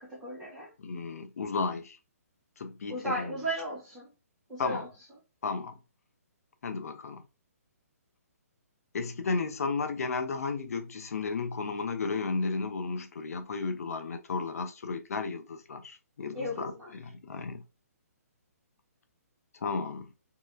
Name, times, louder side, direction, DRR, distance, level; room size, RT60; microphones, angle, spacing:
voice 1, 0.0-0.7 2.9-4.1 4.5-4.9 16.3-16.9, right 1 dB, 5° right, 1.6 m, -35 dB
voice 2, 0.8-2.0 2.6-3.3 4.6-4.8 5.4-5.8 6.6-7.2 8.9-17.6 19.6-20.1, left 4 dB, 70° left, 0.6 m, -33 dB
3.1 x 2.9 x 2.4 m
hypercardioid pair, 155°, 9 cm